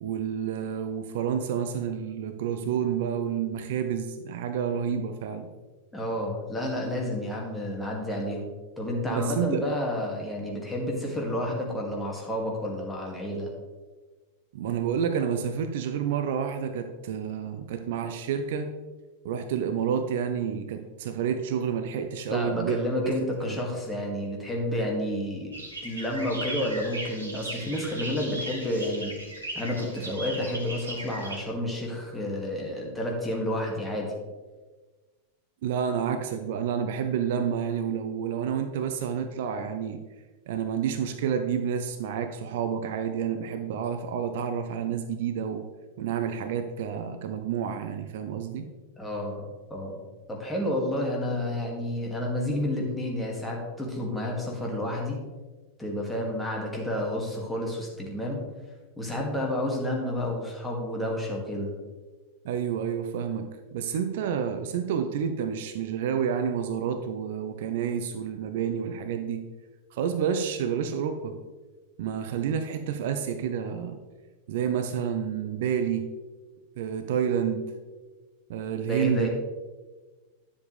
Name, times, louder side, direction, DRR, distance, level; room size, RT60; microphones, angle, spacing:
voice 1, 0.0-5.5 9.1-9.6 14.5-18.7 19.2-23.1 23.4-23.6 35.6-40.0 40.5-45.6 46.0-48.7 62.4-69.4 69.9-71.4 72.0-74.0 74.5-76.1 76.8-77.7 78.5-79.3, right 8 dB, 55° right, 8 dB, 0.6 m, -29 dB
voice 2, 5.9-8.4 8.8-13.5 22.3-25.5 25.8-29.2 29.5-34.1 49.0-50.0 50.3-55.2 55.8-58.4 59.0-61.7 78.9-79.3, left 1 dB, 5° left, -2 dB, 2.2 m, -30 dB
sound 1, 25.5-31.4, right 1 dB, 80° right, 1.6 m, -37 dB
10.5 x 7.3 x 3.3 m, 1.3 s
figure-of-eight pair, 90°, 0 cm